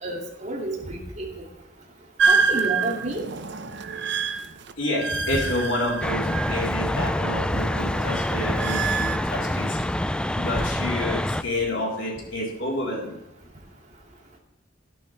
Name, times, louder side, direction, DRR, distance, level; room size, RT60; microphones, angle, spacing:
voice 1, 0.0-1.3 2.3-3.2 7.4-7.5, right 2 dB, 40° right, -1 dB, 2.5 m, -30 dB
sound 1, 2.2-6.9 7.2-9.2, right 5 dB, 65° right, 0.8 m, -27 dB
voice 2, 4.8-9.8 10.3-13.2, left 1 dB, 85° left, -2 dB, 3.9 m, -29 dB
sound 2, 6.0-11.4, left 1 dB, 5° left, 0.3 m, -26 dB
12.5 x 11.5 x 3.4 m, 0.89 s
head